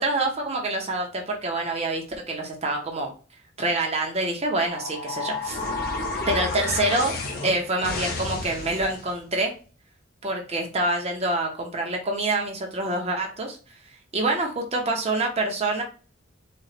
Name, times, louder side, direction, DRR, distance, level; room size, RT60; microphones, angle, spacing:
voice 1, 0.0-3.1 3.6-5.6 6.3-7.1 7.4-9.5 10.2-13.6 14.1-15.8, right 2 dB, 30° right, 1 dB, 0.9 m, -26 dB
sound 1, 4.6-9.1, left 3 dB, 50° left, 1.0 m, -31 dB
4.3 x 2.5 x 4.1 m, 0.37 s
head